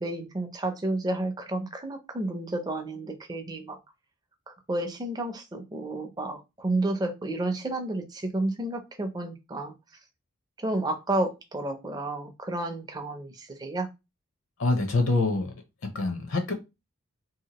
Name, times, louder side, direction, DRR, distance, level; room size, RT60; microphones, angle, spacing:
voice 1, 0.0-3.8 4.5-9.8 10.6-13.9, right 2 dB, 15° right, 0.4 m, -31 dB
voice 2, 14.6-15.5 15.9-16.5, left 3 dB, 60° left, 0.6 m, -25 dB
2.8 x 2.7 x 2.9 m
head